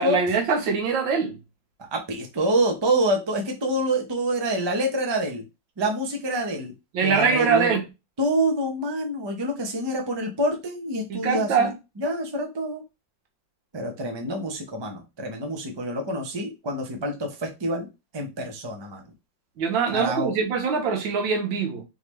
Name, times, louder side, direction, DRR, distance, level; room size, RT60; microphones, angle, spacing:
voice 1, 0.0-1.4 6.9-7.8 11.1-11.7 19.6-21.8, right 5 dB, 90° right, 1.7 m, -23 dB
voice 2, 1.9-5.4 5.8-6.7 7.0-7.7 8.2-11.7 12.0-12.8 13.7-17.9 18.1-19.0 19.9-20.3, right 1 dB, 40° right, 0.3 m, -26 dB
3.8 x 3.6 x 3.2 m
omnidirectional pair, 2.0 m